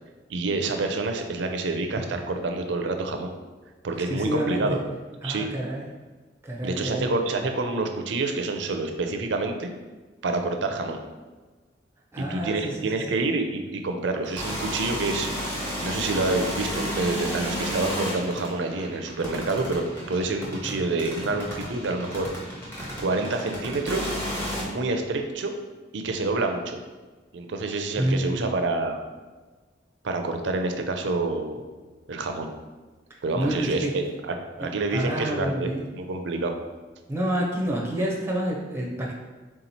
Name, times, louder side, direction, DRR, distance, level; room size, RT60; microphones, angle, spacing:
voice 1, 0.3-3.3 3.8-4.8 5.2-5.5 6.6-9.7 10.2-11.0 12.2-22.3 23.0-24.1 24.6-25.5 25.9-26.8 27.3-29.0 30.0-31.6 32.1-32.5 33.2-36.5, right 3 dB, 65° right, 5 dB, 0.5 m, -28 dB
voice 2, 4.1-4.6 5.2-5.9 6.4-7.1 12.1-13.2 28.0-28.5 33.1-33.9 34.6-35.8 37.1-39.1, right 1 dB, 15° right, -2 dB, 0.6 m, -28 dB
sound 1, 14.2-24.6, equal, 10° left, 1.0 m, -32 dB
3.6 x 2.9 x 4.1 m, 1.3 s
head